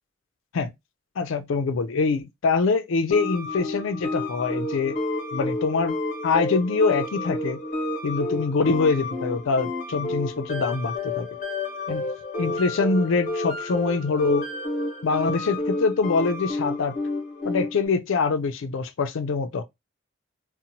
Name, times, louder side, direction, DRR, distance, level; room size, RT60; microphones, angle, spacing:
voice 1, 1.2-5.0 5.3-7.6 8.0-11.3 11.9-12.1 12.4-14.5 15.0-17.0 17.4-19.6, left 4 dB, 80° left, 0.4 m, -24 dB
sound 1, 3.1-17.9, left 2 dB, 40° left, 0.6 m, -30 dB
2.8 x 2.1 x 2.6 m
head